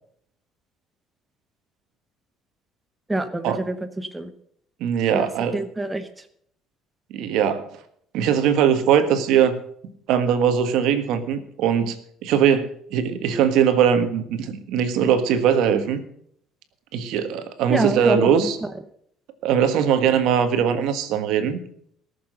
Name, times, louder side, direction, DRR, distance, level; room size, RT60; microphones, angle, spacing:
voice 1, 3.1-4.3 5.1-6.1 17.7-18.5, right 2 dB, 10° right, 8 dB, 0.8 m, -26 dB
voice 2, 4.8-5.6 7.1-7.6 8.1-9.6 10.1-12.0 12.2-16.0 16.9-18.6 19.4-21.6, right 8 dB, 70° right, 9 dB, 1.5 m, -20 dB
18.0 x 6.9 x 6.5 m, 0.67 s
cardioid pair, 155°, 0 cm